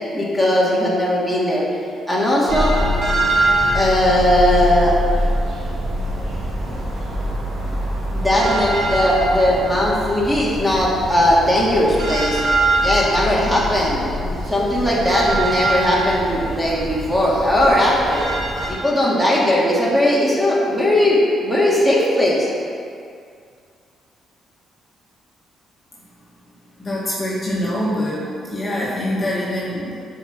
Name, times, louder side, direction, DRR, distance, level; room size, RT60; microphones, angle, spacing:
voice 1, 0.1-2.8 3.7-4.9 8.1-12.4 12.8-18.3 18.7-22.5, left 1 dB, ahead, -6 dB, 2.3 m, -18 dB
sound 1, 2.5-18.7, right 1 dB, 55° right, 2.1 m, -23 dB
voice 2, 26.8-29.9, left 1 dB, 30° left, -6 dB, 1.7 m, -24 dB
8.8 x 4.9 x 6.1 m, 2.3 s
cardioid pair, 90°, 0 cm